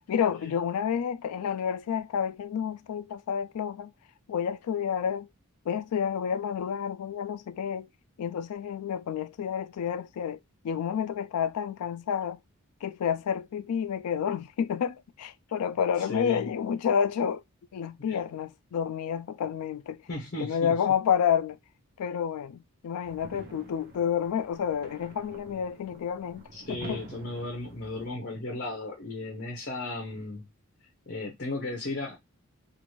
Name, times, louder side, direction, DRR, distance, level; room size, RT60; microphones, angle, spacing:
voice 1, 0.1-3.9 4.3-5.3 5.7-7.9 8.2-10.4 10.6-12.4 12.8-17.4 17.7-20.0 20.4-21.6 22.0-26.5 26.8-27.0, left 8 dB, 90° left, 0.3 m, -29 dB
voice 2, 16.0-16.5 18.1-18.2 20.1-20.7 26.5-30.5 31.1-32.2, left 2 dB, 45° left, 0.8 m, -35 dB
sound 1, 23.0-28.1, right 3 dB, 45° right, 0.6 m, -48 dB
2.6 x 2.4 x 3.0 m
head